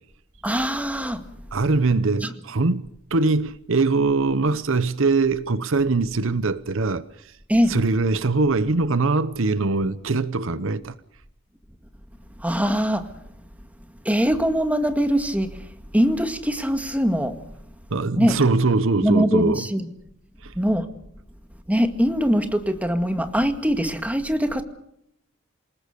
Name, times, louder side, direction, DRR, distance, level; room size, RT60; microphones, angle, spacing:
voice 1, 0.4-1.2 2.2-2.3 7.5-7.8 12.4-13.1 14.1-15.7 15.9-17.4 18.2-18.4 19.0-19.9 20.6-20.9 21.7-24.6, equal, 5° right, 2.0 m, -22 dB
voice 2, 1.5-7.3 7.7-10.9 17.9-19.7 20.4-20.5, right 3 dB, 65° right, 0.9 m, -22 dB
28.0 x 19.0 x 6.8 m
head